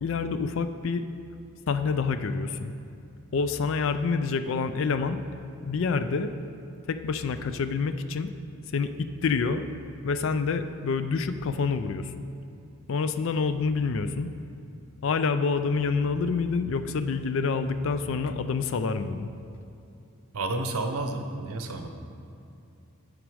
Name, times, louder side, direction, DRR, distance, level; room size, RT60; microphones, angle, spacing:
voice 1, 0.0-1.1 1.7-2.7 3.3-5.2 5.6-6.3 6.9-8.3 8.7-8.9 9.2-9.7 10.0-12.3 12.9-14.3 15.0-19.3, left 4 dB, 60° left, 10 dB, 0.4 m, -27 dB
voice 2, 20.3-21.9, right 2 dB, 75° right, 6 dB, 0.7 m, -30 dB
9.2 x 5.1 x 4.8 m, 2.7 s
head